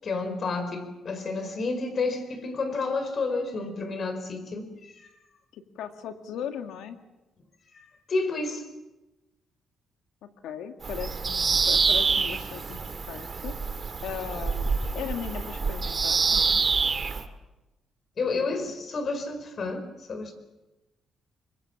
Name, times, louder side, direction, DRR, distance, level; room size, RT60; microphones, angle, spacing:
voice 1, 0.0-5.1 7.7-8.6 18.2-20.3, left 3 dB, 50° left, 9 dB, 4.8 m, -30 dB
voice 2, 5.5-7.0 10.2-13.6 14.0-14.7 14.9-16.6 18.2-18.7, left 8 dB, 85° left, 6 dB, 2.1 m, -38 dB
Bird vocalization bird call bird song, 10.8-17.2, right 5 dB, 40° right, 2.2 m, -26 dB
25.0 x 23.0 x 7.3 m, 1.0 s
cardioid pair, 90°, 0 cm